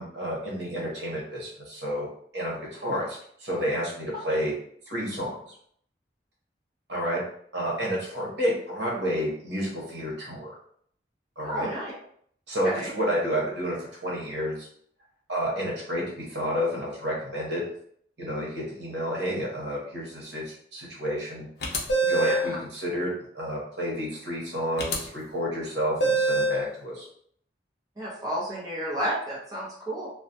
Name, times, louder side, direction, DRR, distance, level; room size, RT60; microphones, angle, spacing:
voice 1, 0.0-2.1 2.3-4.5 4.9-5.4 6.9-7.2 7.5-10.5 11.4-11.7 12.5-14.7 15.3-17.6 18.2-27.0, equal, 75° right, -5 dB, 1.0 m, -30 dB
voice 2, 11.4-11.9 12.6-12.9 22.2-22.6 28.0-30.1, equal, 20° right, -7 dB, 0.7 m, -31 dB
sound 1, 21.6-22.5 24.8-25.0 26.0-26.6, right 2 dB, 65° left, 0.5 m, -24 dB
2.3 x 2.1 x 2.7 m, 0.64 s
head